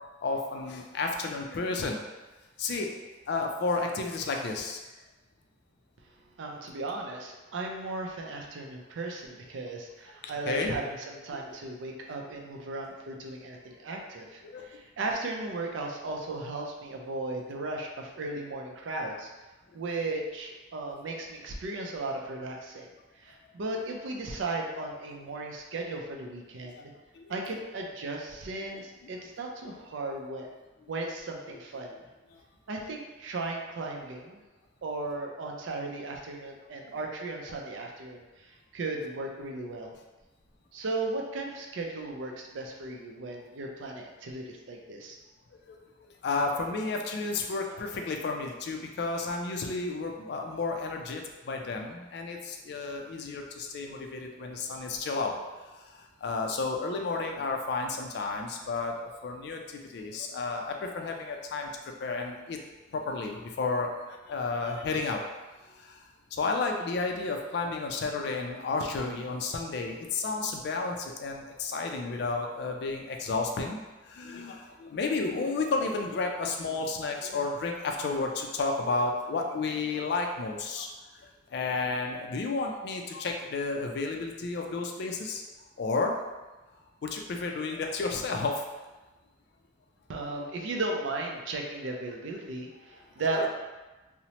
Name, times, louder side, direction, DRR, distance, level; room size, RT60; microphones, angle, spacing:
voice 1, 0.2-2.0 2.6-2.9 3.3-4.8 10.5-10.8 11.5-11.6 14.4-14.7 26.8-26.9 27.1-27.3 29.6-29.7 31.5-31.6 32.3-32.4 45.7-61.7 62.0-62.6 62.9-65.2 65.6-66.0 66.3-80.9 81.2-85.4 85.8-86.2 87.0-88.6 93.3-93.5, left 3 dB, 55° left, 2 dB, 0.3 m, -32 dB
voice 2, 6.4-19.3 19.7-22.9 23.2-26.9 27.3-30.5 30.9-32.0 32.7-34.4 34.8-39.9 40.7-45.2 90.1-93.5, right 2 dB, 75° right, 1 dB, 0.4 m, -36 dB
2.8 x 2.0 x 2.8 m, 1.2 s
head